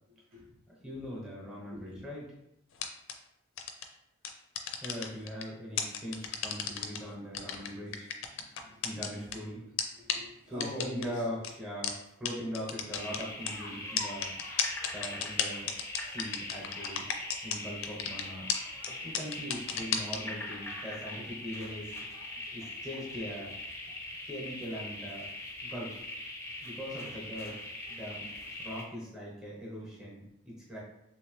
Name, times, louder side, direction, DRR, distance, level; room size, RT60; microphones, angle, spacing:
voice 1, 0.7-2.3 4.8-8.1 8.8-9.7 10.5-14.3 14.6-15.7 16.0-18.5 19.0-22.0 22.5-23.5 24.2-25.2 25.6-26.0 26.6-28.3 28.6-30.8, equal, 5° right, -5 dB, 1.0 m, -41 dB
voice 2, 1.7-2.0 8.3-9.2 10.0-11.2 12.4-12.6, left 1 dB, 80° right, -6 dB, 1.2 m, -44 dB
sound 1, 2.7-3.1 3.6-3.8 4.2-5.4 5.8-7.0 7.3-9.3 9.8-9.9 10.1-10.2 10.6-11.0 11.4-11.5 11.8-11.9 12.2-12.3 12.5-13.5 14.0-17.6 17.8-18.2 18.5-18.6 18.8-18.9 19.1-20.2, left 8 dB, 65° left, 0.4 m, -32 dB
sound 2, 12.9-28.8, left 2 dB, 15° left, 0.6 m, -42 dB
3.2 x 2.9 x 3.1 m, 0.81 s
head